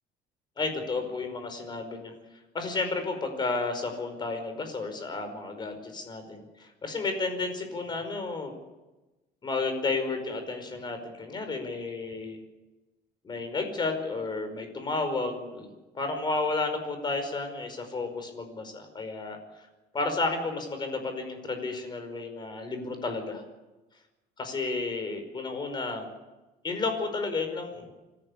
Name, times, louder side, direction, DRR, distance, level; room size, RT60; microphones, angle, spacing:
voice 1, 0.6-2.1 2.5-8.5 9.4-12.4 13.2-15.7 15.9-19.4 19.9-23.4 24.4-26.0 26.6-27.8, left 3 dB, 25° left, 7 dB, 5.2 m, -32 dB
26.0 x 14.5 x 9.9 m, 1.1 s
cardioid pair, 155°, 18 cm